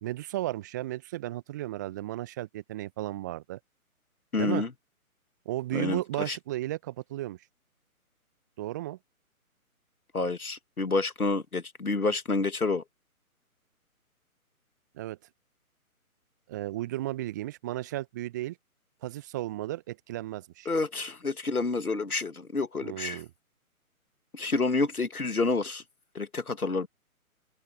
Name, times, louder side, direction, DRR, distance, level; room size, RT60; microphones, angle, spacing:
voice 1, 0.0-3.6 4.4-4.7 5.5-7.4 8.6-9.0 14.9-15.2 16.5-18.6 19.0-20.7 22.8-23.3, right 15 dB, 15° right, 0.8 m, -34 dB
voice 2, 4.3-4.7 5.7-6.4 10.1-12.8 20.7-23.2 24.3-25.8 26.1-26.9, left 3 dB, 75° left, 2.3 m, -29 dB
open air
figure-of-eight pair, 140°, 44 cm